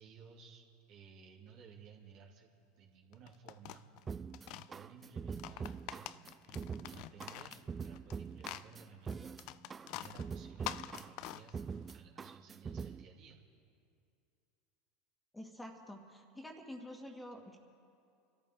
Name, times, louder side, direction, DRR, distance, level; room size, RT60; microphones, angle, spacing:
voice 1, 0.0-4.0 4.4-6.0 6.4-7.6 7.8-9.4 9.9-11.6 11.9-13.4, right 6 dB, 60° right, -2 dB, 2.9 m, -57 dB
sound 1, 3.1-4.7 5.3-8.1 8.4-11.9, left 14 dB, 60° left, 0.5 m, -46 dB
sound 2, 4.1-13.1, right 6 dB, 25° right, 0.4 m, -44 dB
voice 2, 15.3-17.6, left 1 dB, 10° left, 2 dB, 2.2 m, -48 dB
26.0 x 13.5 x 3.8 m, 2.5 s
hypercardioid pair, 85°, 0 cm